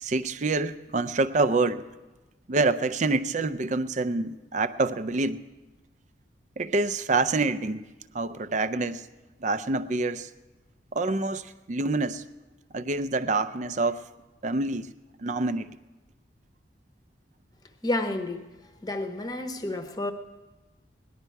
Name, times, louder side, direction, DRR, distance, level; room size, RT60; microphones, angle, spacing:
voice 1, 0.0-1.9 2.5-5.4 6.6-7.8 8.1-9.1 9.4-10.3 10.9-12.2 12.7-14.0 14.4-14.9 15.2-15.7, right 3 dB, 40° right, 0.5 m, -26 dB
voice 2, 17.8-18.4 18.8-20.1, left 2 dB, 20° left, 0.8 m, -30 dB
18.0 x 11.0 x 4.6 m
head